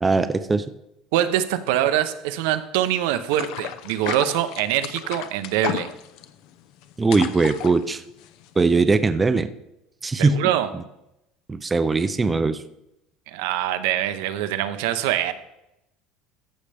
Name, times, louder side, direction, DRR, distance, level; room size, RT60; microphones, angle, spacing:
voice 1, 0.0-0.6 7.0-8.0 8.6-9.5 10.0-10.4 11.5-12.6, right 4 dB, 15° right, 10 dB, 0.4 m, -20 dB
voice 2, 1.1-5.9 10.2-10.7 13.3-15.3, right 12 dB, 85° right, 10 dB, 0.7 m, -24 dB
sound 1, 3.3-8.6, left 11 dB, 65° left, 0.6 m, -33 dB
14.0 x 6.5 x 3.4 m, 0.85 s
cardioid pair, 155°, 0 cm